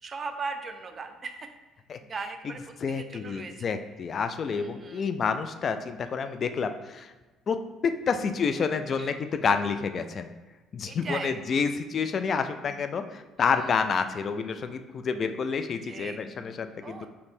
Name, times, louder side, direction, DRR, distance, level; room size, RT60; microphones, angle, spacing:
voice 1, 0.0-1.5 2.0-3.7 4.5-5.0 9.0-9.1 10.9-11.4 13.4-13.7 15.8-16.2 16.8-17.1, right 4 dB, 40° right, 6 dB, 0.5 m, -38 dB
voice 2, 2.8-7.1 7.5-10.3 10.7-17.1, left 5 dB, 50° left, 9 dB, 0.3 m, -29 dB
3.2 x 2.8 x 4.3 m, 1.2 s
supercardioid pair, 75°, 0 cm